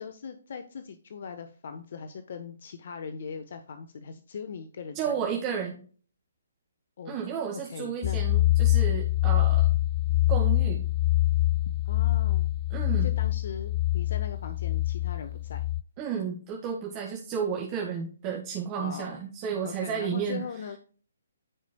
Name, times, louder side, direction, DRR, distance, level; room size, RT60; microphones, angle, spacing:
voice 1, 0.0-5.1 7.0-7.2 7.6-8.2 11.8-12.5 13.0-15.6 18.8-19.2 19.6-20.8, left 6 dB, 55° left, 9 dB, 0.9 m, -40 dB
voice 2, 5.0-5.7 7.1-9.7 10.3-10.9 12.7-13.1 16.0-20.4, right 7 dB, 25° right, 0 dB, 1.8 m, -32 dB
sound 1, 8.0-15.8, left 16 dB, 30° left, 0.4 m, -25 dB
14.5 x 5.1 x 2.3 m, 0.40 s
figure-of-eight pair, 140°, 0 cm